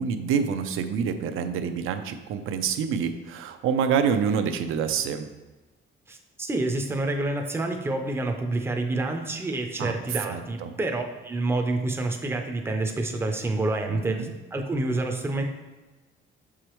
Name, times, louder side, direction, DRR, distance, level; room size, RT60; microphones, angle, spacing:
voice 1, 0.0-5.3 9.8-10.7 13.9-14.3, right 7 dB, 85° right, 8 dB, 0.5 m, -27 dB
voice 2, 6.1-15.4, right 2 dB, 10° right, 4 dB, 0.4 m, -28 dB
6.8 x 4.8 x 3.0 m, 1.2 s
cardioid pair, 180°, 21 cm